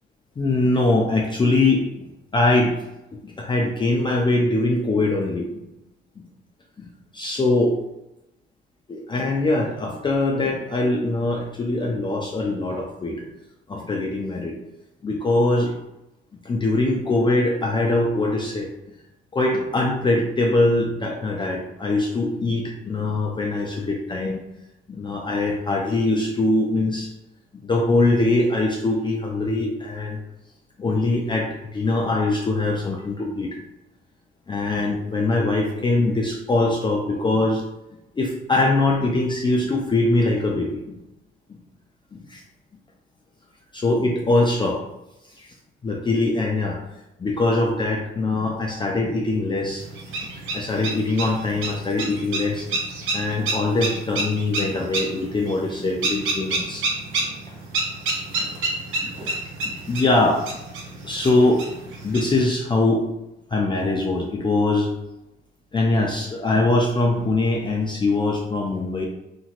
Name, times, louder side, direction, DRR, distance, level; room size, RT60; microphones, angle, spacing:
voice 1, 0.4-2.8 3.1-5.7 6.2-6.3 6.8-7.8 8.9-13.2 13.7-14.5 15.0-15.8 16.4-18.7 19.3-24.4 24.9-27.1 27.5-30.2 30.8-33.6 34.5-37.6 38.1-41.0 41.5-41.6 42.1-42.4 43.7-44.8 45.4-45.5 45.8-46.8 47.2-49.8 50.5-52.8 53.1-56.9 58.4-58.5 59.0-59.1 59.6-60.4 61.0-61.6 62.0-63.0 63.5-64.9 65.7-69.1, left 2 dB, 25° left, -1 dB, 0.4 m, -22 dB
sound 1, 49.8-62.5, right 2 dB, 85° right, 0.8 m, -29 dB
3.0 x 2.7 x 2.5 m, 0.93 s
cardioid pair, 90°, 20 cm